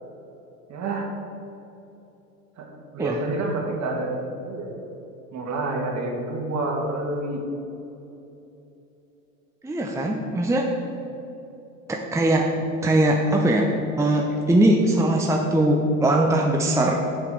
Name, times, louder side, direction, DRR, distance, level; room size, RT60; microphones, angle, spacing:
voice 1, 0.7-1.1 2.6-2.7 2.9-4.2 4.5-4.8 5.3-7.4, right 2 dB, 40° right, 0 dB, 2.2 m, -28 dB
voice 2, 9.6-10.8 11.9-12.5 12.8-13.7 14.0-17.0, right 1 dB, 5° right, 1 dB, 0.8 m, -21 dB
7.6 x 6.5 x 6.3 m, 2.9 s
hypercardioid pair, 75°, 42 cm